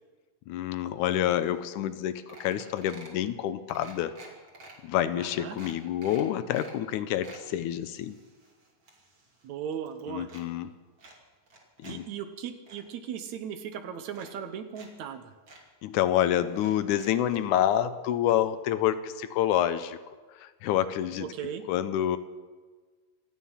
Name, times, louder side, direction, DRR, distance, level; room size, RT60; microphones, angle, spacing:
voice 1, 0.5-4.1 4.8-8.2 10.1-10.7 11.8-12.0 15.8-20.0 20.4-21.3 21.7-22.2, left 11 dB, 80° left, 13 dB, 2.1 m, -28 dB
sound 1, 1.6-1.7 1.9-2.0 2.3-3.2 3.7-4.7 5.2-5.3 5.6-6.8 7.0-7.4 8.0-9.5 9.7-10.4 11.0-12.0 12.3-12.8 13.6-13.7 14.1-14.9 15.1-15.2 15.5-15.6 16.5-17.4 18.3-18.4 18.7-18.8, right 2 dB, 40° right, 3.1 m, -50 dB
voice 2, 5.2-5.6 9.4-10.3 11.9-15.3 21.2-21.6, right 8 dB, 70° right, 9 dB, 2.1 m, -37 dB
26.5 x 9.3 x 5.7 m, 1.4 s
omnidirectional pair, 3.6 m